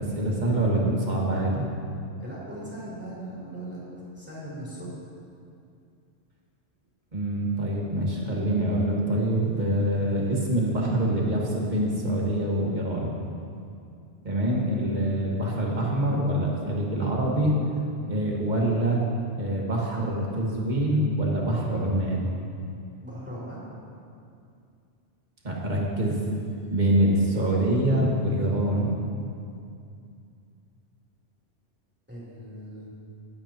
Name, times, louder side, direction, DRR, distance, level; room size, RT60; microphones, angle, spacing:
voice 1, 0.0-1.7 7.1-13.1 14.2-17.5 18.1-19.0 19.4-22.3 25.4-26.2 26.7-28.9, right 1 dB, 40° right, -3 dB, 1.9 m, -25 dB
voice 2, 2.2-3.8 4.1-5.0 23.0-23.8 32.1-32.9, right 1 dB, 10° right, -9 dB, 3.3 m, -39 dB
20.0 x 8.7 x 3.0 m, 2.5 s
omnidirectional pair, 1.2 m